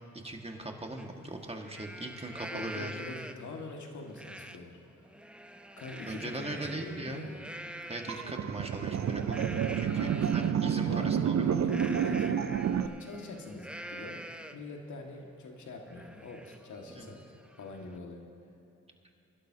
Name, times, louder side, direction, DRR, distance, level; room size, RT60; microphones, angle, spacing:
voice 1, 0.2-3.0 6.1-7.2 7.9-11.5 17.0-17.1, right 2 dB, 20° right, 2 dB, 1.8 m, -39 dB
Livestock farm animals working animals, 1.0-1.1 1.5-3.6 4.1-4.6 5.0-10.5 11.6-14.7 15.2-15.3 15.6-18.0, right 1 dB, 5° right, 0.7 m, -46 dB
voice 2, 2.5-4.8 5.8-7.4 9.9-10.5 10.9-12.5 12.8-14.2 14.5-17.2 17.6-18.3, left 3 dB, 70° left, 1 dB, 2.0 m, -44 dB
sound 1, 8.1-12.9, right 8 dB, 60° right, 0.7 m, -29 dB
23.5 x 11.5 x 2.9 m, 2.8 s
supercardioid pair, 50°, 31 cm